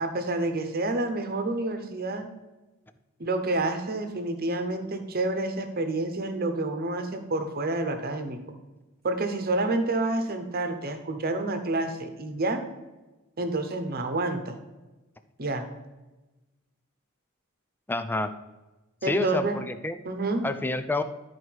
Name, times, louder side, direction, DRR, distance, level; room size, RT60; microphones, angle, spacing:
voice 1, 0.0-2.3 3.2-8.4 9.0-12.6 13.4-14.6 15.4-15.7 19.0-19.6 20.0-20.4, right 2 dB, 45° right, 7 dB, 1.0 m, -28 dB
voice 2, 17.9-18.3 19.0-20.0 20.4-21.0, left 2 dB, 10° left, 10 dB, 0.4 m, -28 dB
12.0 x 4.7 x 4.7 m, 1.1 s
head